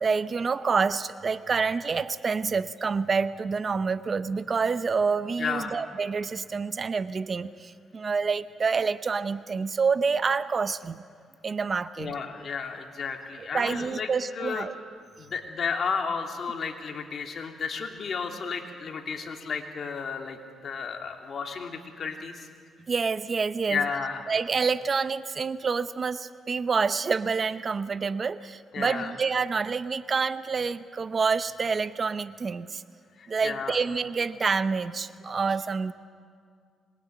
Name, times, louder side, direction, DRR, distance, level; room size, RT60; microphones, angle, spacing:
voice 1, 0.0-11.0 11.4-12.1 13.5-14.7 22.9-23.9 24.3-32.8 33.3-35.9, right 5 dB, 40° right, 14 dB, 0.8 m, -27 dB
voice 2, 5.4-5.8 12.0-14.7 15.2-20.4 20.6-22.5 23.7-24.3 28.7-29.1 33.2-33.8, left 5 dB, 50° left, 3 dB, 3.0 m, -33 dB
25.5 x 21.5 x 9.3 m, 2.1 s
cardioid pair, 90°, 0 cm